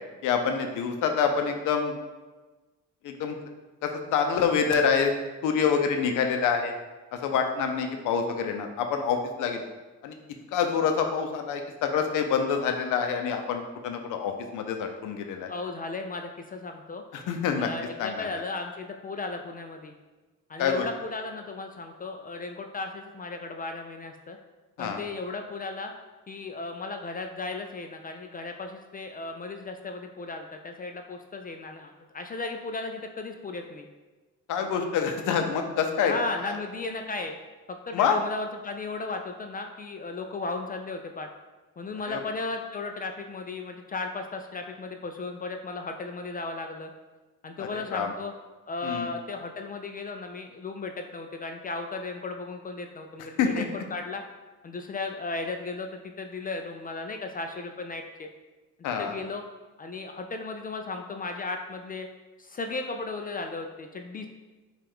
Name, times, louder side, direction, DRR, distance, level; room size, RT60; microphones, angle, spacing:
voice 1, 0.2-1.9 3.0-3.4 3.8-5.1 5.4-6.7 7.1-9.6 10.0-10.2 10.5-15.5 17.1-17.7 18.0-18.3 20.6-20.8 24.8-25.0 34.5-36.1 36.4-36.6 37.9-38.2 42.1-42.2 47.6-48.1 48.8-49.1 53.4-53.6 58.8-59.2, left 6 dB, 85° left, 5 dB, 0.6 m, -26 dB
voice 2, 15.5-17.0 17.6-19.9 20.5-24.4 24.8-25.9 26.3-33.9 36.0-37.4 37.7-41.3 41.8-46.9 47.4-48.3 48.7-54.2 54.6-58.3 59.0-59.4 59.8-62.1 62.4-64.3, left 3 dB, 30° left, 4 dB, 0.4 m, -35 dB
5.5 x 2.5 x 3.5 m, 1.2 s
cardioid pair, 90°, 30 cm